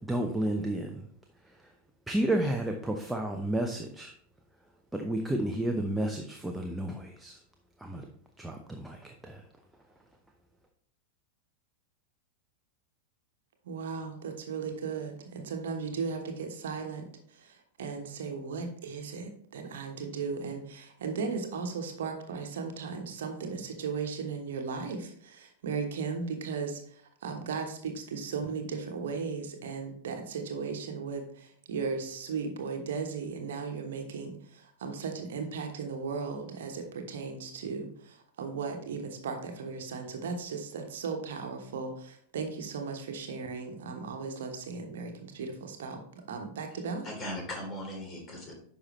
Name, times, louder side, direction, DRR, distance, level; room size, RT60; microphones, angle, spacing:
voice 1, 0.1-1.1 1.4-1.7 2.1-4.1 4.9-7.4 7.8-8.1 8.4-9.4, right 1 dB, 5° right, 3 dB, 0.7 m, -31 dB
voice 2, 13.6-17.0 17.4-26.8 27.2-47.0, right 5 dB, 60° right, 4 dB, 1.2 m, -36 dB
voice 3, 46.7-48.5, left 1 dB, 25° left, 0 dB, 3.2 m, -39 dB
9.7 x 5.6 x 3.1 m, 0.63 s
figure-of-eight pair, 90°, 0 cm